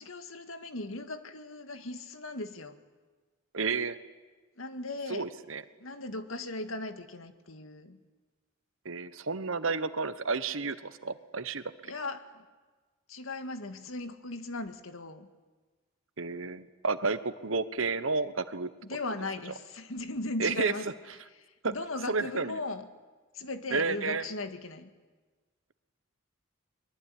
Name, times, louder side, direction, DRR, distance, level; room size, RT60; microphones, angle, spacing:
voice 1, 0.0-2.8 4.6-5.3 5.8-8.0 11.8-12.4 13.1-15.3 18.8-20.9 21.4-22.9 23.3-24.9, left 2 dB, 80° left, 8 dB, 2.0 m, -38 dB
voice 2, 3.5-4.0 5.1-5.6 8.8-11.6 16.2-18.7 20.4-20.7 21.6-21.7 22.1-22.6 23.7-24.2, right 4 dB, 75° right, 13 dB, 1.2 m, -31 dB
23.5 x 22.0 x 10.0 m, 1.3 s
head